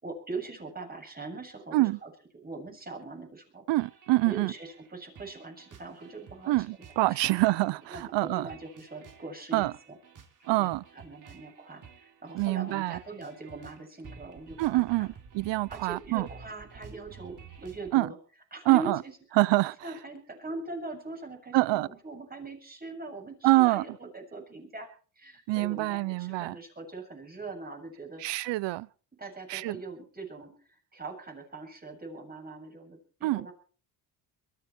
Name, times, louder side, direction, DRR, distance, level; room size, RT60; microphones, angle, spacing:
voice 1, 0.0-3.6 4.2-6.7 7.1-7.2 7.9-10.0 10.5-15.1 15.5-18.2 18.5-19.1 19.8-24.9 25.2-28.2 29.2-33.5, right 3 dB, 20° right, 7.7 m, -42 dB
sound 1, 3.7-17.9, right 6 dB, 45° right, 3.3 m, -52 dB
voice 2, 3.7-4.5 6.5-8.5 9.5-9.7 10.5-10.8 12.3-13.0 14.6-15.1 15.3-16.3 17.9-18.1 18.7-19.0 19.4-19.8 21.5-21.9 23.4-23.8 25.5-26.5 28.2-28.9 29.5-29.8 33.2-33.5, right 20 dB, 75° right, 0.8 m, -25 dB
22.5 x 13.5 x 4.6 m
cardioid pair, 115°, 44 cm